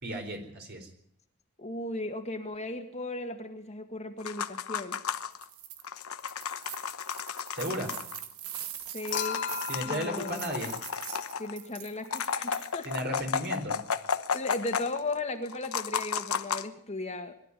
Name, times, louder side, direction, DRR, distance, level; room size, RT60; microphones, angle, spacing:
voice 1, 0.0-0.9 7.5-8.0 9.7-10.8 12.8-13.8, equal, 50° right, 4 dB, 4.5 m, -34 dB
voice 2, 1.6-5.0 8.9-9.5 9.8-10.4 11.4-12.9 14.3-17.3, left 2 dB, 30° left, 5 dB, 1.8 m, -36 dB
sound 1, 4.2-5.4 5.8-8.2 8.5-8.6 8.9-11.5 12.0-15.1 15.5-16.7, left 6 dB, 75° left, 1.0 m, -34 dB
sound 2, 5.3-5.8 6.2-12.9, right 11 dB, 85° right, 1.6 m, -43 dB
Human group actions / Chink clink / Liquid, 9.1-11.5 13.0-13.1, left 8 dB, 55° left, 1.4 m, -37 dB
22.0 x 12.5 x 9.9 m, 0.71 s
head